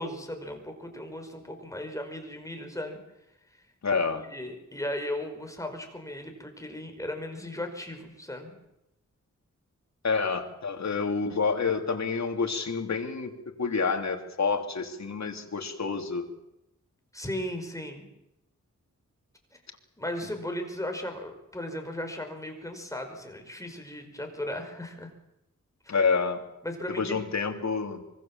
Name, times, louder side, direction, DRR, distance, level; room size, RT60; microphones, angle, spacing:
voice 1, 0.0-3.0 4.1-8.6 17.1-18.1 20.0-25.1 25.8-26.0 26.6-27.2, left 1 dB, 10° left, 4 dB, 5.3 m, -36 dB
voice 2, 3.8-4.2 10.0-16.3 25.9-26.4 27.0-28.0, left 5 dB, 60° left, 4 dB, 3.3 m, -28 dB
25.0 x 24.0 x 7.5 m, 0.86 s
wide cardioid pair, 100°, 30 cm